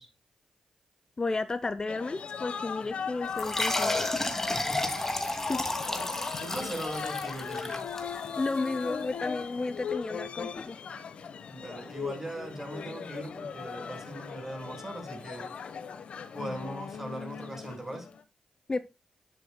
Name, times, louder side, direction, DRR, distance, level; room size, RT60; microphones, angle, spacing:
voice 1, 1.2-3.9 5.5-5.6 8.4-10.8 18.7-18.8, left 3 dB, 35° left, 0.8 m, -32 dB
sound 1, 1.9-18.2, left 6 dB, 65° left, 1.2 m, -39 dB
sound 2, 3.4-8.5, left 2 dB, 20° left, 2.5 m, -32 dB
voice 2, 4.5-5.0 5.9-6.1 6.4-7.8 11.5-15.5 16.3-18.1, right 1 dB, 15° right, 5.5 m, -39 dB
11.0 x 7.5 x 2.3 m
supercardioid pair, 50°, 2 cm